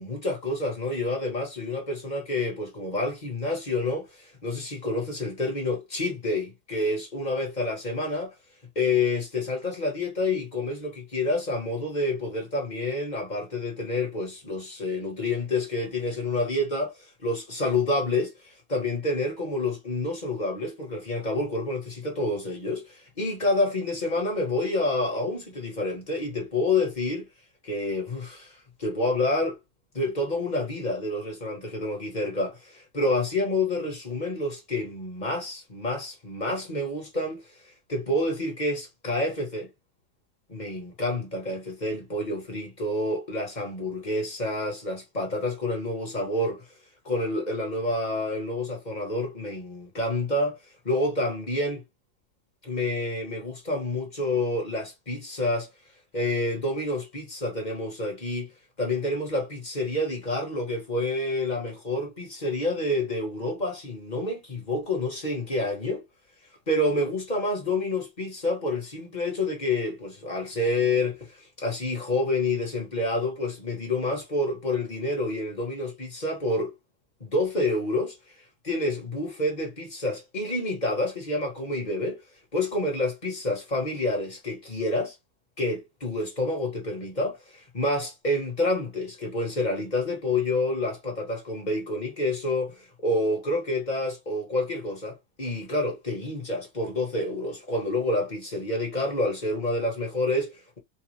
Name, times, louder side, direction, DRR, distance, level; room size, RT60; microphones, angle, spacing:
voice 1, 0.0-8.3 8.7-16.9 17.2-27.3 27.6-29.6 29.9-37.5 37.9-39.7 40.5-46.6 47.0-50.6 50.8-51.8 52.6-55.7 56.1-58.5 58.8-66.0 66.7-76.7 77.2-78.2 78.6-82.2 82.5-85.1 85.6-100.8, left 2 dB, 30° left, 1.2 m, -28 dB
3.5 x 2.3 x 3.0 m
omnidirectional pair, 1.7 m